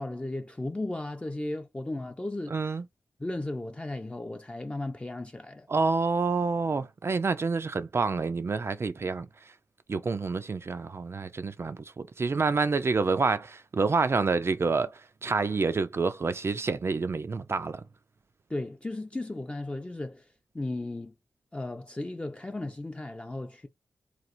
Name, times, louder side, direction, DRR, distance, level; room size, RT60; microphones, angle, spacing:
voice 1, 0.0-2.5 3.2-5.7 18.5-20.2 20.5-21.1 21.5-23.7, left 2 dB, 20° left, 0.5 m, -35 dB
voice 2, 2.5-2.8 5.7-9.3 9.9-17.8, right 4 dB, 45° right, 0.3 m, -28 dB
3.0 x 2.3 x 2.5 m
cardioid pair, 45°, 6 cm